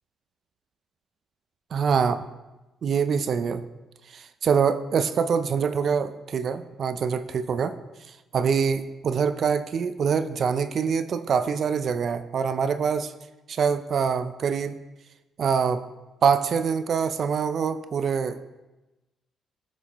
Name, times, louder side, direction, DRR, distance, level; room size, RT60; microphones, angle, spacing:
voice 1, 1.7-2.2 2.8-3.6 4.1-7.8 8.3-13.1 13.5-14.8 15.4-15.8 16.2-18.4, right 6 dB, 55° right, 11 dB, 0.5 m, -24 dB
14.0 x 6.2 x 3.0 m, 1.1 s
cardioid pair, 90°, 0 cm